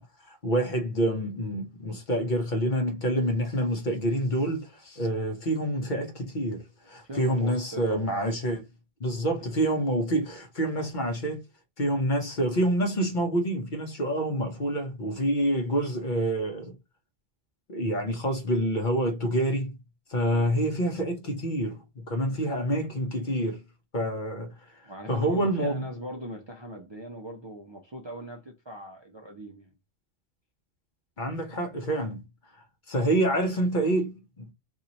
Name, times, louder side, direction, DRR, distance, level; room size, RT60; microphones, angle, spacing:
voice 1, 0.3-8.6 9.0-11.4 11.8-16.7 17.7-19.8 20.1-23.6 23.9-25.8 31.2-32.2 32.9-34.5, right 1 dB, 50° left, 0.9 m, -27 dB
voice 2, 7.0-8.3 9.4-9.5 20.3-20.6 22.3-22.5 24.8-29.7, equal, 35° right, 0.5 m, -40 dB
2.9 x 2.7 x 3.9 m
omnidirectional pair, 1.1 m